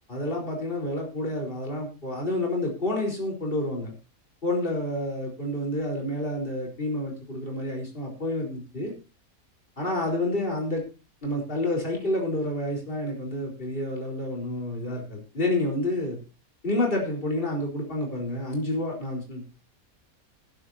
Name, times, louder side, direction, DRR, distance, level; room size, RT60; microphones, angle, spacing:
voice 1, 0.1-3.9 4.4-8.9 9.8-10.8 11.2-16.2 16.6-19.5, left 1 dB, 35° left, 0 dB, 4.5 m, -29 dB
20.5 x 11.5 x 2.8 m, 0.31 s
omnidirectional pair, 1.5 m